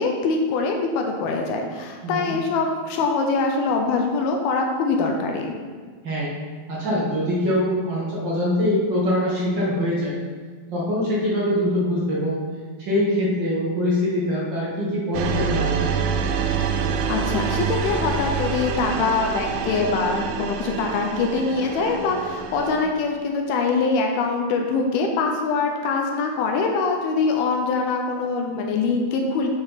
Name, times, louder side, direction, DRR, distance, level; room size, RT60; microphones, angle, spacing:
voice 1, 0.0-5.5 17.1-29.5, left 4 dB, 85° left, 2 dB, 2.6 m, -23 dB
voice 2, 2.0-2.3 6.0-6.3 6.7-10.2 10.7-12.4 12.8-15.8, left 1 dB, 55° right, -6 dB, 1.2 m, -23 dB
sound 1, 15.1-22.9, right 6 dB, 85° right, 2.4 m, -26 dB
10.5 x 4.4 x 4.0 m, 1.5 s
omnidirectional pair, 4.3 m